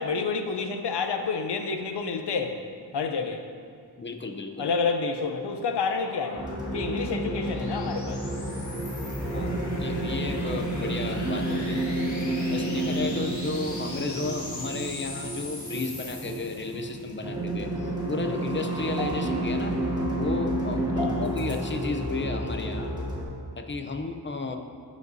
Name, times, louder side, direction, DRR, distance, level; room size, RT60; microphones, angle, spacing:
voice 1, 0.0-2.6 2.9-3.4 4.6-8.2 13.0-13.2 20.9-21.3, left 4 dB, 75° left, 5 dB, 0.7 m, -29 dB
voice 2, 4.0-4.7 9.3-11.8 12.5-19.8 20.1-22.9 23.6-24.6, left 3 dB, 30° left, 5 dB, 0.6 m, -33 dB
sound 1, 5.0-17.0, left 2 dB, 45° left, 1.6 m, -42 dB
sound 2, 6.4-23.2, right 1 dB, 10° right, 1.3 m, -30 dB
15.5 x 5.2 x 2.7 m, 2.2 s
wide cardioid pair, 115°, 41 cm